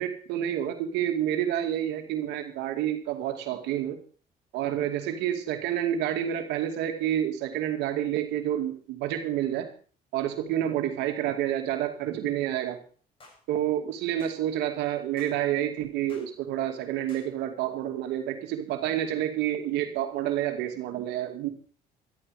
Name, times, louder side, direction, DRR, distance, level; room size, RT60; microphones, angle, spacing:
voice 1, 0.0-4.0 4.5-9.7 10.1-12.8 13.5-21.5, right 11 dB, 90° right, 5 dB, 2.5 m, -29 dB
sound 1, 13.2-13.4 14.2-14.4 15.2-15.4 16.1-16.3 17.1-17.3, left 2 dB, 30° left, 7.4 m, -53 dB
14.0 x 13.0 x 4.9 m, 0.42 s
cardioid pair, 110°, 17 cm